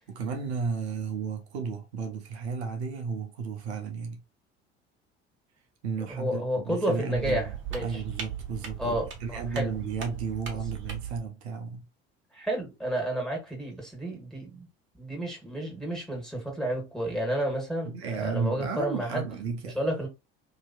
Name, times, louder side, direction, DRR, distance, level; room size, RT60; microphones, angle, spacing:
voice 1, 0.1-4.2 5.8-11.9 17.8-19.8, right 5 dB, 80° right, 0.7 m, -33 dB
voice 2, 6.1-8.0 8.8-9.7 12.3-14.7 15.0-19.2 19.7-20.1, right 1 dB, ahead, 1.5 m, -31 dB
sound 1, 7.1-11.2, right 8 dB, 40° right, 1.1 m, -38 dB
2.8 x 2.7 x 2.2 m
hypercardioid pair, 65°, 32 cm